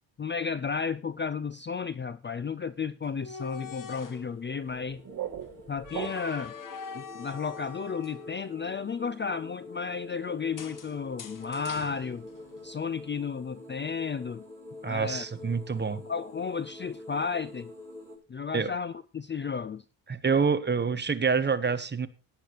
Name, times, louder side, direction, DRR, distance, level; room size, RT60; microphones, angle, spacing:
voice 1, 0.2-5.0 5.7-6.5 6.9-12.3 12.6-14.4 14.8-15.2 15.9-17.7 18.3-19.8, left 5 dB, 25° left, 16 dB, 0.5 m, -33 dB
sound 1, 3.0-4.3 5.8-8.8 10.6-12.8, left 6 dB, 45° left, 1.6 m, -44 dB
sound 2, 3.5-18.2, left 2 dB, 5° left, 7.1 m, -47 dB
sound 3, 4.7-6.6, right 9 dB, 45° right, 2.4 m, -39 dB
voice 2, 14.8-16.0 18.5-18.7 20.1-22.1, right 5 dB, 25° right, 12 dB, 1.1 m, -27 dB
17.5 x 10.0 x 3.0 m, 0.31 s
cardioid pair, 125°, 45 cm